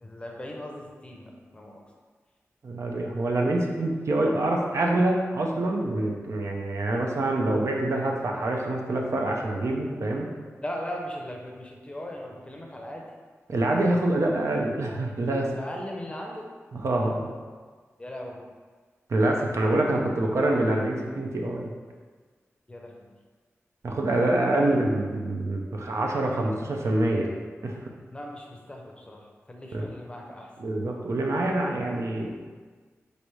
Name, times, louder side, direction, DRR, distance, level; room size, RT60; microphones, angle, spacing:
voice 1, 0.0-1.8 10.6-13.0 15.5-16.4 18.0-18.4 22.7-22.9 28.1-30.5, left 1 dB, 20° left, 0 dB, 0.6 m, -38 dB
voice 2, 2.6-10.3 13.5-15.6 16.7-17.3 19.1-21.7 23.8-27.3 27.6-27.8 29.7-29.9 30.6-32.3, right 1 dB, 70° right, 0 dB, 0.5 m, -26 dB
4.6 x 2.6 x 3.1 m, 1.5 s
wide cardioid pair, 90°, 5 cm